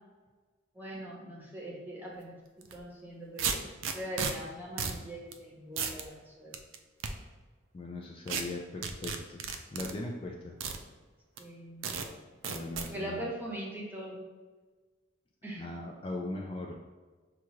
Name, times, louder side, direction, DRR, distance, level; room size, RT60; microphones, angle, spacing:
voice 1, 0.7-3.6 3.9-6.6 11.4-11.9 12.9-14.2 15.4-15.6, right 1 dB, 10° right, -3 dB, 0.8 m, -41 dB
sound 1, 2.6-2.8 3.4-4.3 4.8-5.0 5.3-5.4 5.8-6.0 6.5-7.1 8.3-8.4 8.8-9.9 10.6-10.8 11.4-11.5 11.8-12.1 12.4-12.9, right 6 dB, 75° right, 0.4 m, -33 dB
voice 2, 7.7-10.6 12.5-13.2 15.6-16.7, left 2 dB, 25° left, 0 dB, 0.3 m, -39 dB
5.8 x 2.4 x 3.0 m, 1.3 s
head